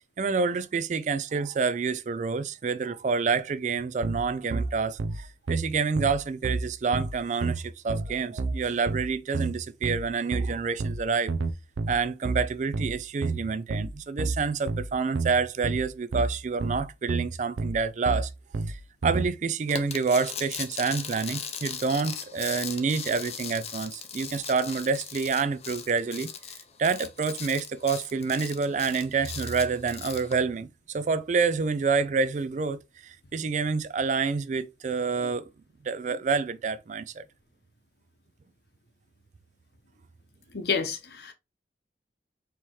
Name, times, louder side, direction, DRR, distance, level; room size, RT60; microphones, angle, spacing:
voice 1, 0.2-11.3 11.9-18.3 18.7-26.3 26.8-35.5 35.8-37.2, right 5 dB, 40° right, 0.3 m, -28 dB
sound 1, 4.0-19.3, right 3 dB, 90° right, 0.5 m, -30 dB
sound 2, 19.7-30.3, left 7 dB, 35° left, 0.6 m, -38 dB
voice 2, 40.5-41.3, left 5 dB, 60° left, 0.9 m, -29 dB
4.5 x 3.4 x 3.0 m
head